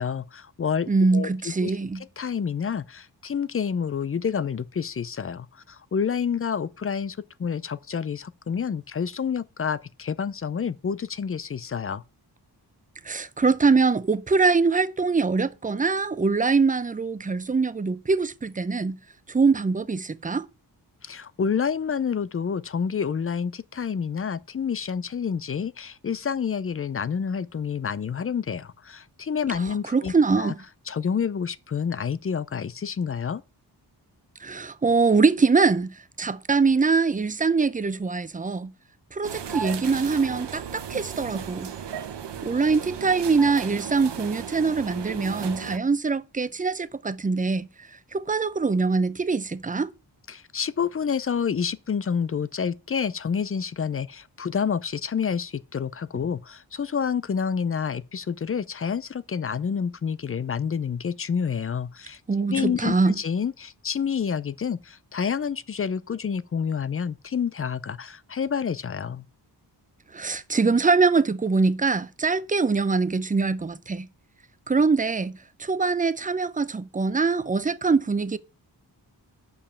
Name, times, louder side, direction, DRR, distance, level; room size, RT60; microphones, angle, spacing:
voice 1, 0.0-1.7 2.2-12.0 21.0-30.5 30.9-33.4 50.3-62.2 62.5-69.3, left 6 dB, 35° left, 0.4 m, -28 dB
voice 2, 0.9-2.0 13.0-19.0 19.3-20.5 29.9-30.6 34.4-38.7 39.1-41.7 42.4-47.7 48.1-49.9 62.3-63.2 70.1-74.1 74.7-75.3 75.6-78.4, right 4 dB, 20° right, 0.5 m, -23 dB
sound 1, 39.2-45.8, right 8 dB, 80° right, 1.0 m, -35 dB
6.9 x 5.4 x 7.0 m
wide cardioid pair, 85°, 41 cm